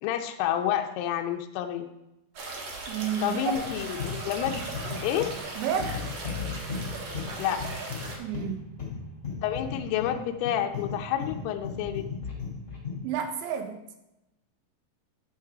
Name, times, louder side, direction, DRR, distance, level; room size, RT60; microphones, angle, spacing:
voice 1, 0.0-1.9 3.2-4.6 5.0-5.3 7.4-7.6 9.4-12.0, left 10 dB, 85° left, 4 dB, 2.3 m, -29 dB
sound 1, 2.3-8.2, right 3 dB, 65° right, 1.7 m, -38 dB
voice 2, 2.9-3.4 5.6-6.0 7.4-7.5 8.2-8.6 13.0-13.8, right 8 dB, 85° right, 6 dB, 3.1 m, -31 dB
sound 2, 3.5-13.1, left 5 dB, 30° left, 1.5 m, -36 dB
9.1 x 5.9 x 4.8 m, 0.93 s
omnidirectional pair, 5.3 m